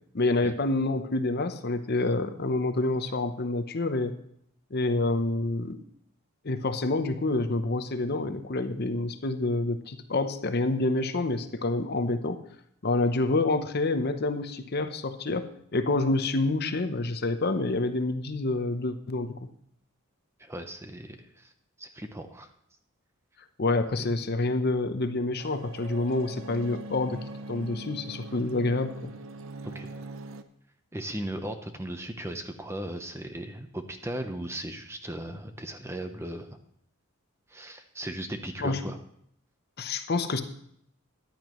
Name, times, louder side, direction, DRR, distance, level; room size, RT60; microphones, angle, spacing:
voice 1, 0.1-4.1 4.7-5.8 6.4-12.4 12.8-15.5 15.7-19.3 23.6-27.2 27.5-29.1 38.6-38.8 39.8-40.4, left 2 dB, 45° left, 9 dB, 0.7 m, -27 dB
voice 2, 20.4-21.5 21.8-22.5 24.0-24.1 29.6-29.9 30.9-36.5 37.5-39.0, right 1 dB, 10° right, 7 dB, 0.7 m, -37 dB
sound 1, 25.4-30.4, right 2 dB, 65° right, 0.7 m, -42 dB
14.0 x 10.5 x 3.1 m, 0.69 s
head